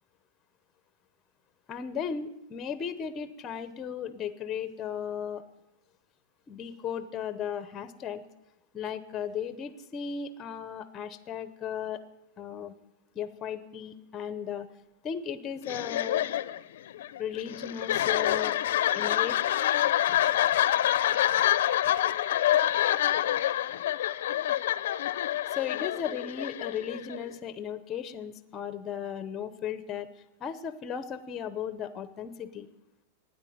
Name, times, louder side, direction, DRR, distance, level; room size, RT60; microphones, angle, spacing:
voice 1, 1.7-5.4 6.5-8.2 8.7-12.0 12.4-12.7 13.1-14.7 15.0-16.3 17.2-18.5 18.9-19.4 25.5-30.1 30.4-32.7, left 8 dB, 20° left, 13 dB, 0.8 m, -36 dB
sound 1, 15.6-27.3, left 12 dB, 75° left, 0.6 m, -27 dB
12.5 x 9.6 x 9.3 m, 0.94 s
supercardioid pair, 165°, 0 cm